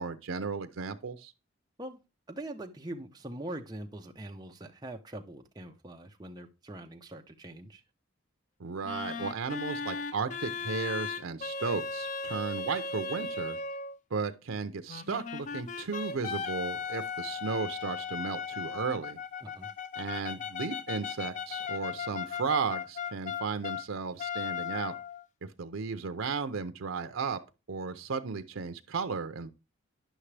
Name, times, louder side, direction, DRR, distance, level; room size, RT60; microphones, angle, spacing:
voice 1, 0.0-1.3 8.6-13.6 14.1-19.2 20.0-24.9 25.4-27.4 27.7-29.5, right 5 dB, 75° right, 0.6 m, -34 dB
voice 2, 2.3-7.8 19.4-19.7, right 1 dB, 20° right, 0.7 m, -43 dB
sound 1, 8.8-14.0 14.9-23.9 24.2-25.2, left 5 dB, 35° left, 0.4 m, -37 dB
10.0 x 5.9 x 3.3 m
head